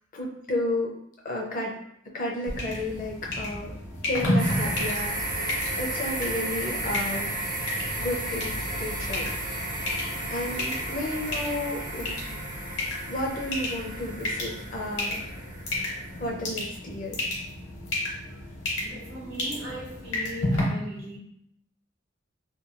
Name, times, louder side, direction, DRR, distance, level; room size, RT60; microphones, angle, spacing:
voice 1, 0.1-1.0 1.2-1.7 2.1-3.7 4.0-5.4 5.8-7.3 8.0-9.3 10.3-12.2 13.1-15.2 16.2-17.2, left 1 dB, 45° left, -1 dB, 0.5 m, -32 dB
sound 1, 2.5-20.6, left 1 dB, 65° left, 0.9 m, -33 dB
sound 2, 4.4-16.3, right 1 dB, 45° right, 0.5 m, -33 dB
voice 2, 18.8-21.2, equal, 70° right, -5 dB, 1.0 m, -38 dB
2.7 x 2.3 x 2.5 m, 0.73 s
head